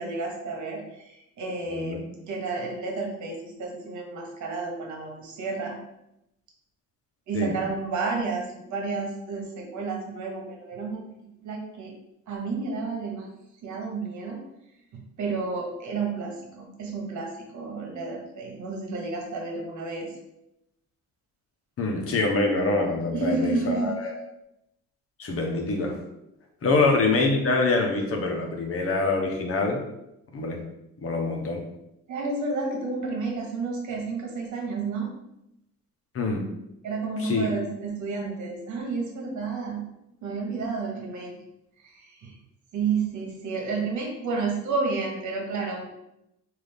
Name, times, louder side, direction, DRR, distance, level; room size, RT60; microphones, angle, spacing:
voice 1, 0.0-5.8 7.3-11.9 12.3-13.3 13.6-14.4 14.9-20.1 23.1-23.9 32.1-35.1 36.8-39.9 40.2-41.4 41.8-42.3 42.7-45.8, right 4 dB, 75° right, 0 dB, 1.2 m, -31 dB
voice 2, 1.7-2.0 7.3-7.5 21.8-24.1 25.2-26.0 26.6-29.8 30.3-30.6 31.0-31.6 36.1-36.4 37.2-37.5, left 3 dB, 50° left, 1 dB, 1.0 m, -25 dB
4.0 x 2.7 x 3.4 m, 0.85 s
cardioid pair, 90°, 30 cm